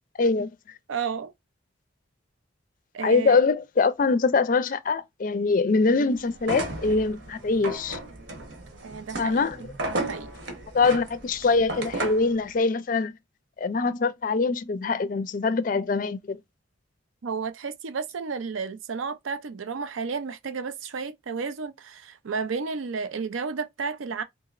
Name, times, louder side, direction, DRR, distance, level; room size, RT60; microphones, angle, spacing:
voice 1, 0.2-0.5 3.0-8.0 9.2-9.6 10.7-13.1 13.6-16.4, left 4 dB, 45° left, 0.4 m, -23 dB
voice 2, 0.9-1.3 2.9-3.4 8.8-9.5 9.9-10.3 17.2-24.2, right 5 dB, 85° right, 0.5 m, -32 dB
sound 1, 6.4-12.3, right 2 dB, 70° right, 1.1 m, -34 dB
3.7 x 2.9 x 2.5 m
head